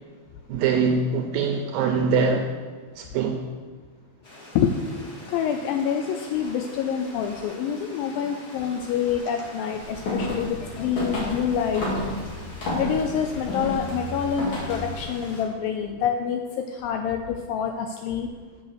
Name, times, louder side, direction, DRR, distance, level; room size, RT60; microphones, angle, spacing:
voice 1, 0.5-2.5 3.0-3.4, right 5 dB, 80° right, 4 dB, 2.1 m, -23 dB
Stream, 4.2-15.4, left 1 dB, 35° left, 1.8 m, -44 dB
voice 2, 5.3-11.9 12.8-18.3, left 8 dB, 85° left, 5 dB, 2.0 m, -27 dB
sound 1, 9.8-15.0, left 1 dB, 50° left, 3.5 m, -31 dB
7.4 x 6.5 x 6.3 m, 1.5 s
omnidirectional pair, 4.5 m